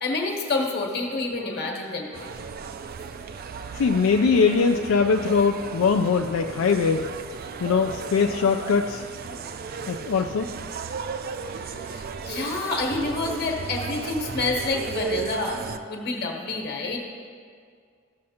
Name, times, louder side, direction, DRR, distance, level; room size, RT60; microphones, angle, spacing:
voice 1, 0.0-2.4 4.0-4.1 11.6-15.6 15.9-17.3, left 3 dB, 50° left, 0 dB, 1.3 m, -28 dB
sound 1, 2.1-15.8, right 5 dB, 45° right, 0.4 m, -35 dB
voice 2, 3.7-7.1 7.6-9.0 9.9-10.5, left 5 dB, 80° left, 4 dB, 0.4 m, -21 dB
14.0 x 6.4 x 2.8 m, 2.1 s
head